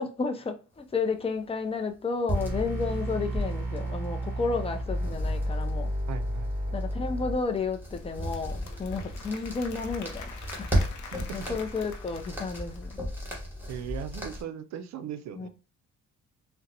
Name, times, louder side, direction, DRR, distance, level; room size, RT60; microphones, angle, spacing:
voice 1, 0.0-5.9 6.7-10.3 10.6-10.7 11.3-13.0 15.4-15.5, left 4 dB, 20° left, 0.5 m, -32 dB
sound 1, 2.3-14.4, equal, 5° right, 1.2 m, -35 dB
sound 2, 2.3-7.3, equal, 30° right, 1.6 m, -31 dB
voice 2, 6.1-6.8 13.7-15.5, right 9 dB, 65° right, 0.5 m, -38 dB
Applause / Crowd, 7.7-13.1, left 4 dB, 80° left, 0.7 m, -46 dB
3.8 x 2.2 x 2.7 m
cardioid pair, 90°, 30 cm